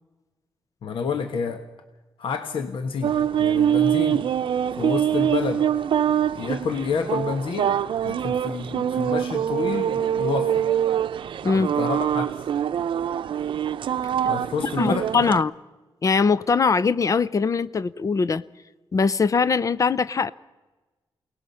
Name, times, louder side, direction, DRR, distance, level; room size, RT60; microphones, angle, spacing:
voice 1, 0.8-1.6 2.2-3.1 3.4-4.3 4.8-5.6 6.3-7.8 8.0-10.7 11.5-12.3 14.3-15.2, left 5 dB, 85° left, 7 dB, 1.5 m, -29 dB
sound 1, 3.0-15.4, right 9 dB, 75° right, 0.6 m, -24 dB
voice 2, 11.4-11.8 14.8-15.5 16.0-18.4 18.9-20.3, left 5 dB, 40° left, 18 dB, 0.6 m, -21 dB
29.0 x 18.5 x 5.7 m, 1.2 s
wide cardioid pair, 120°, 9 cm